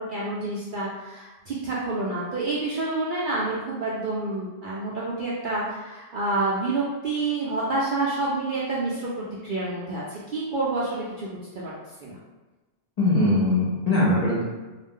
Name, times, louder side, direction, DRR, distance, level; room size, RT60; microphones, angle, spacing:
voice 1, 0.0-9.1 9.4-11.7 12.0-12.2, right 2 dB, 60° right, -7 dB, 0.5 m, -28 dB
voice 2, 13.0-14.4, left 2 dB, 45° left, -7 dB, 0.6 m, -21 dB
2.4 x 2.0 x 3.6 m, 1.2 s
omnidirectional pair, 1.3 m